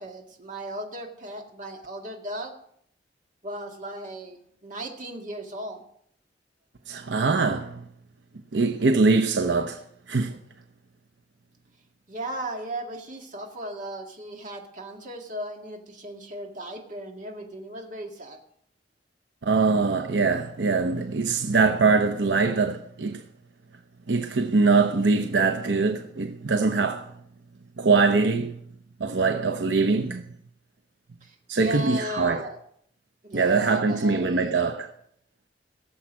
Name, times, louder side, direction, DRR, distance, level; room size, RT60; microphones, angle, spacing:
voice 1, 0.0-2.5 3.4-5.8 12.1-18.4 31.2-32.6 33.2-34.5, right 1 dB, 45° right, 1.9 m, -36 dB
voice 2, 6.9-7.8 8.5-9.8 10.1-10.4 19.4-23.2 24.1-27.1 27.8-28.6 29.0-30.2 31.5-32.4 33.3-34.9, right 4 dB, 85° right, 0.8 m, -23 dB
17.0 x 7.3 x 6.1 m
head